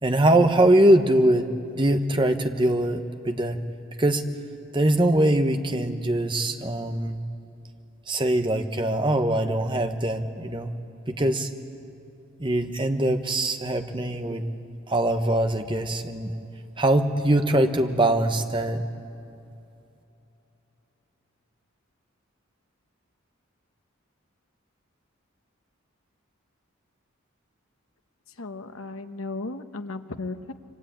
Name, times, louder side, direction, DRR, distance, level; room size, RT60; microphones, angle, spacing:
voice 1, 0.0-1.5 1.7-3.6 4.0-4.2 4.7-7.2 8.1-10.7 11.1-11.5 12.4-14.5 14.9-16.3 16.8-18.8, right 1 dB, 25° right, 6 dB, 1.2 m, -22 dB
voice 2, 28.4-30.5, left 3 dB, 85° left, 8 dB, 1.1 m, -35 dB
28.0 x 24.0 x 8.7 m, 2.7 s
head